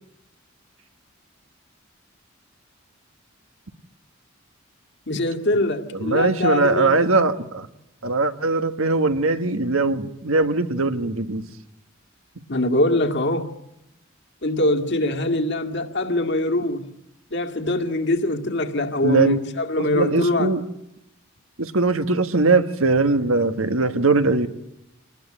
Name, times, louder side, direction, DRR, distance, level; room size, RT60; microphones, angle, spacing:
voice 1, 5.1-7.1 12.5-13.5 14.4-16.9 17.3-20.6, left 1 dB, 55° left, 2.1 m, -23 dB
voice 2, 6.0-7.7 8.0-11.4 19.0-19.4 19.9-20.6 21.6-24.5, right 3 dB, 85° right, 1.6 m, -20 dB
27.0 x 19.5 x 8.9 m
head